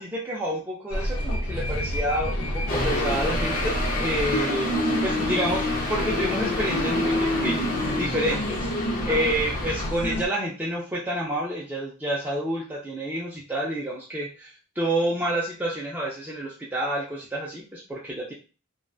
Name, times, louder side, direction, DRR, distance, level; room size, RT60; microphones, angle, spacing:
voice 1, 0.0-4.7 5.0-8.7 9.1-18.3, right 1 dB, 10° right, -7 dB, 0.4 m, -29 dB
sound 1, 0.9-10.3, equal, 90° left, 0.5 m, -29 dB
sound 2, 2.7-9.9, left 2 dB, 40° left, 0.5 m, -28 dB
2.6 x 2.1 x 2.3 m, 0.35 s
head